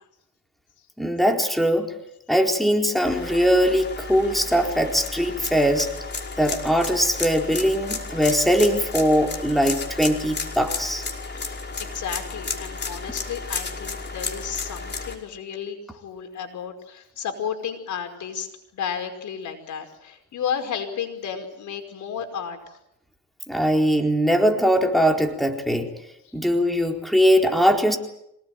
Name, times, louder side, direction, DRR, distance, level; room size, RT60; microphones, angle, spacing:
voice 1, 1.0-1.9 2.3-5.9 6.4-11.0 23.5-25.9 26.3-28.0, equal, ahead, 3 dB, 4.3 m, -21 dB
sound 1, 3.0-15.2, left 4 dB, 35° left, 5.4 m, -33 dB
voice 2, 11.8-18.5 18.7-22.8, left 7 dB, 75° left, 5 dB, 5.4 m, -32 dB
26.5 x 19.0 x 9.3 m, 0.79 s
cardioid pair, 90°, 30 cm